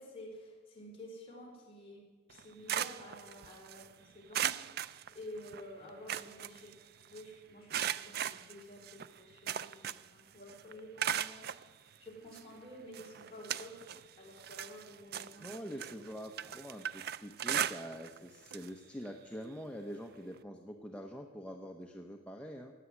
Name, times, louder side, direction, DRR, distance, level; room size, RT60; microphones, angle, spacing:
voice 1, 0.0-6.7 7.1-13.9 14.2-16.0 16.4-16.5, left 1 dB, 25° left, -3 dB, 5.0 m, -51 dB
sound 1, 2.3-3.9 4.3-5.6 5.9-7.2 7.7-10.2 10.5-11.6 12.3-12.4 12.9-14.1 14.4-18.2 18.5-18.7 19.1-19.2 20.4-20.5, right 9 dB, 50° right, 0.4 m, -37 dB
voice 2, 15.4-22.7, equal, 5° left, 2 dB, 0.9 m, -45 dB
16.0 x 9.2 x 9.5 m, 1.4 s
head